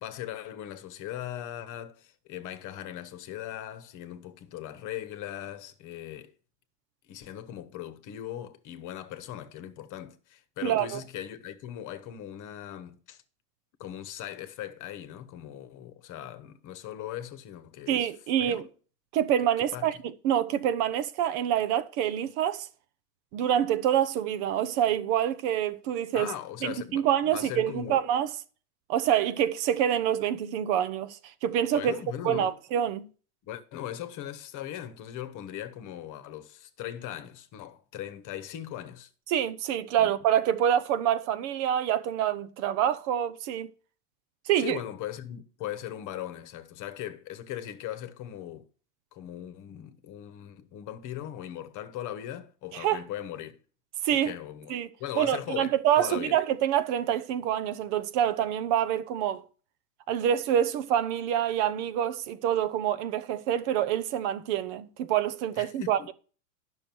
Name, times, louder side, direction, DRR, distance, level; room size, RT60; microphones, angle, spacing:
voice 1, 0.0-6.3 7.1-13.2 13.8-18.1 18.4-18.7 19.7-19.9 26.1-28.1 31.7-32.6 33.5-39.1 40.0-40.1 44.6-48.7 49.1-53.6 54.1-54.7 55.0-56.4 65.6-66.1, left 11 dB, 40° left, 1.2 m, -39 dB
voice 2, 10.6-11.0 17.9-18.7 19.1-22.7 23.3-26.3 26.6-28.3 28.9-31.9 32.2-33.1 39.3-43.7 44.5-44.8 52.7-53.0 54.0-54.3 54.7-54.9 55.1-59.4 60.1-66.1, right 10 dB, 45° right, 0.7 m, -26 dB
10.5 x 6.4 x 4.5 m
hypercardioid pair, 115°, 49 cm